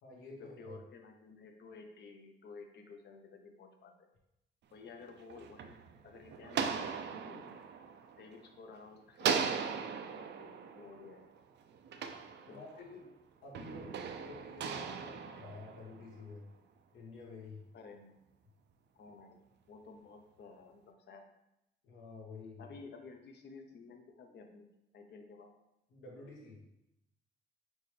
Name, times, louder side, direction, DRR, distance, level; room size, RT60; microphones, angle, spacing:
voice 1, 0.0-0.7 12.5-13.1 13.4-16.5 16.9-17.6 21.8-22.7 25.9-26.6, left 3 dB, 75° left, -2 dB, 1.3 m, -50 dB
voice 2, 0.6-4.1 4.7-5.8 6.0-7.6 8.2-11.3 12.5-12.8 17.7-18.2 18.9-21.3 22.6-24.7 24.9-25.5, left 4 dB, 60° left, 4 dB, 0.8 m, -53 dB
sound 1, 5.0-8.7 9.2-12.9 13.5-16.2, right 6 dB, 60° right, 0.4 m, -39 dB
4.4 x 3.3 x 3.2 m, 0.85 s
cardioid pair, 90°, 20 cm